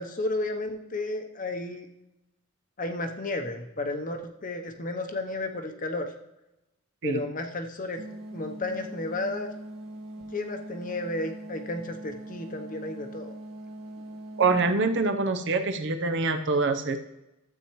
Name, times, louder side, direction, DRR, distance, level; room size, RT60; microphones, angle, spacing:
voice 1, 0.0-1.9 2.8-6.1 7.0-9.5 10.3-13.3, left 2 dB, 40° left, 5 dB, 0.8 m, -33 dB
sound 1, 8.0-14.7, right 1 dB, 85° right, 1.9 m, -42 dB
voice 2, 14.4-17.0, right 3 dB, 55° right, 8 dB, 0.7 m, -25 dB
12.5 x 7.8 x 3.1 m, 0.93 s
head